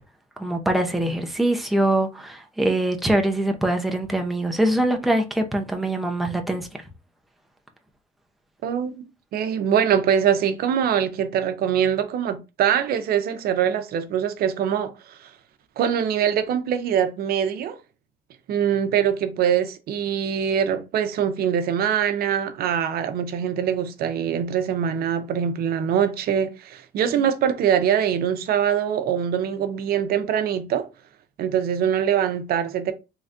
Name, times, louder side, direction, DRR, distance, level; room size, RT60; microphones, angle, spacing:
voice 1, 0.4-6.7, right 1 dB, ahead, 0.6 m, -23 dB
voice 2, 8.6-9.0 9.3-15.3 15.8-17.8 18.5-30.9 31.4-32.9, right 8 dB, 65° right, 0.7 m, -23 dB
4.0 x 3.3 x 2.5 m
cardioid pair, 110°, 17 cm